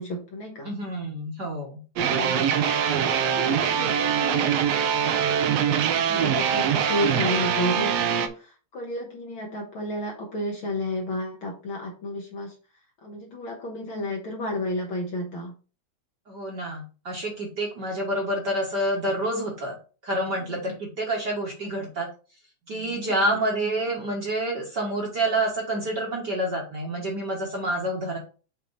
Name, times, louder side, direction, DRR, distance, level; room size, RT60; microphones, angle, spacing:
voice 1, 0.0-0.7 2.1-12.6 13.0-15.5 20.4-20.8 23.0-23.4, left 1 dB, 55° left, 0 dB, 1.6 m, -32 dB
voice 2, 0.6-1.8 16.3-19.7 20.0-22.1 22.7-28.2, right 1 dB, 45° right, -1 dB, 1.6 m, -28 dB
sound 1, 2.0-8.3, right 8 dB, 75° right, 1.6 m, -23 dB
6.8 x 4.4 x 4.0 m, 0.36 s
omnidirectional pair, 3.4 m